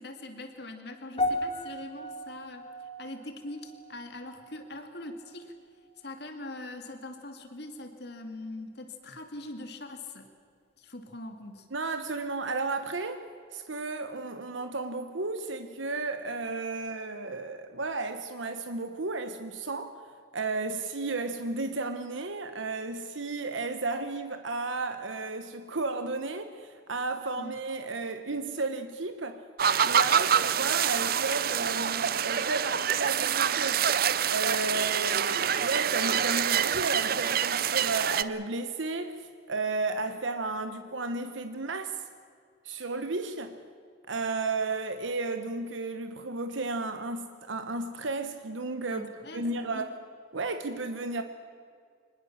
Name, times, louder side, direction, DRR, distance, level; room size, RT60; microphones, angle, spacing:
voice 1, 0.0-2.6 3.0-5.5 6.0-10.3 10.8-11.7 27.4-27.6 48.9-49.9, left 2 dB, 55° left, 2.4 m, -42 dB
sound 1, 1.2-5.6 5.8-6.2 6.9-7.0, left 1 dB, 30° left, 2.3 m, -36 dB
voice 2, 11.7-13.2 13.5-20.0 20.3-29.4 29.8-33.9 34.3-42.0 42.6-43.6 44.1-49.9 50.3-51.2, right 3 dB, 75° right, 1.2 m, -33 dB
sound 2, 29.6-38.2, right 8 dB, 50° right, 0.6 m, -26 dB
24.5 x 20.0 x 7.3 m
head